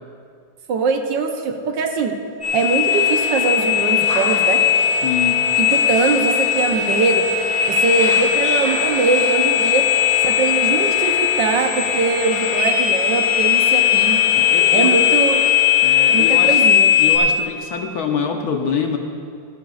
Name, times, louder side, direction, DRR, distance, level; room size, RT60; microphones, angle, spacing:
voice 1, 0.7-2.1 2.5-4.6 5.6-7.2 7.7-9.8 10.2-14.2 14.7-15.4 16.1-16.9, right 4 dB, 75° right, 4 dB, 1.5 m, -21 dB
sound 1, 2.4-17.2, left 8 dB, 5° left, 1.9 m, -18 dB
voice 2, 5.0-5.4 14.3-15.0 15.8-16.6 17.0-19.0, left 6 dB, 60° left, 3 dB, 1.2 m, -25 dB
26.5 x 9.0 x 2.4 m, 2.3 s
omnidirectional pair, 2.0 m